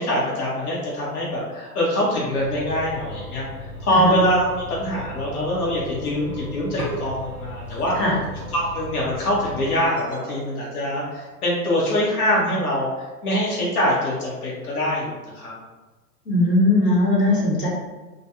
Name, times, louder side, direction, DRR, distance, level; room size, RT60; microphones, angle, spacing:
voice 1, 0.0-3.4 3.8-7.9 8.5-15.6, equal, 65° left, -5 dB, 0.9 m, -24 dB
sound 1, 2.3-9.8, left 1 dB, 20° right, 0.4 m, -37 dB
voice 2, 3.9-4.2 7.9-8.2 16.3-17.7, left 2 dB, 85° left, -5 dB, 1.1 m, -19 dB
sound 2, 6.5-11.6, right 1 dB, 5° right, 0.8 m, -39 dB
2.3 x 2.2 x 2.8 m, 1.2 s
figure-of-eight pair, 105°, 48 cm